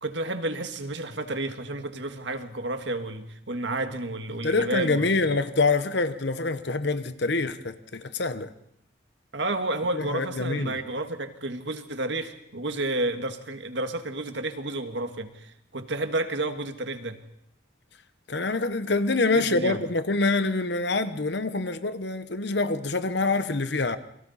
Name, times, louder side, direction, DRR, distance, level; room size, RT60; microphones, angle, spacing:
voice 1, 0.0-5.1 9.3-17.2 19.3-19.9, right 2 dB, 65° right, 1.8 m, -31 dB
voice 2, 4.4-8.5 10.0-10.8 18.3-24.0, left 3 dB, 60° left, 1.1 m, -26 dB
29.0 x 23.0 x 4.2 m
head